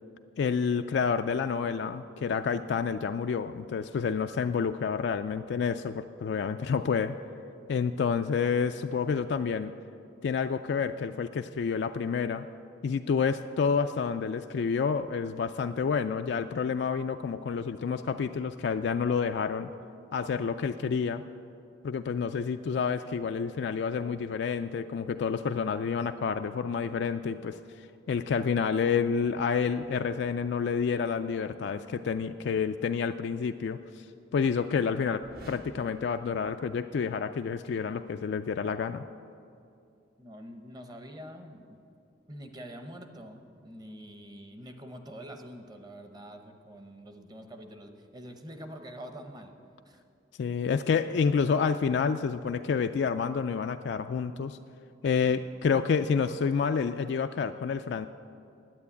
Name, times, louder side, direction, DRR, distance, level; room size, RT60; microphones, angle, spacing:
voice 1, 0.4-7.2 7.7-9.7 10.2-12.5 12.8-19.7 20.1-21.2 21.8-34.1 34.3-39.1 50.4-54.6 55.0-58.1, left 6 dB, 60° left, 7 dB, 0.3 m, -29 dB
sound 1, 35.2-37.2, right 1 dB, 55° right, 1.0 m, -51 dB
voice 2, 40.2-41.8 42.3-49.5 49.9-50.0 55.2-55.4, equal, 20° right, 6 dB, 0.9 m, -45 dB
10.5 x 9.4 x 8.4 m, 2.5 s
head